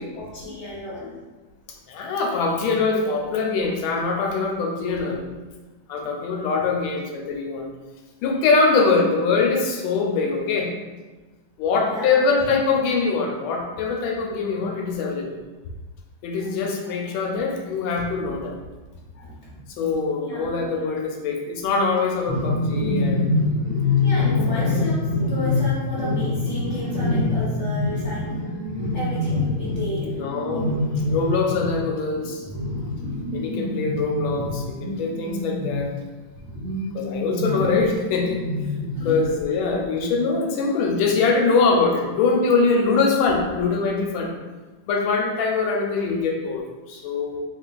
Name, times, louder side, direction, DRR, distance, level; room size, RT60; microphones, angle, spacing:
voice 1, 0.1-1.2 11.8-12.6 19.2-19.3 20.1-20.9 24.0-28.6 28.9-30.2 37.5-37.8 38.9-39.2, left 2 dB, 55° left, -8 dB, 0.9 m, -33 dB
voice 2, 1.9-5.2 5.9-7.7 8.2-10.7 11.6-15.4 16.2-18.5 19.7-23.3 24.6-24.8 30.2-32.4 33.3-35.9 36.9-38.5 39.0-44.3 44.9-47.4, left 4 dB, 80° left, 1 dB, 1.4 m, -23 dB
sound 1, 22.3-36.0 36.4-39.2, left 2 dB, 20° right, 0.7 m, -25 dB
3.4 x 3.2 x 2.2 m, 1.2 s
omnidirectional pair, 2.2 m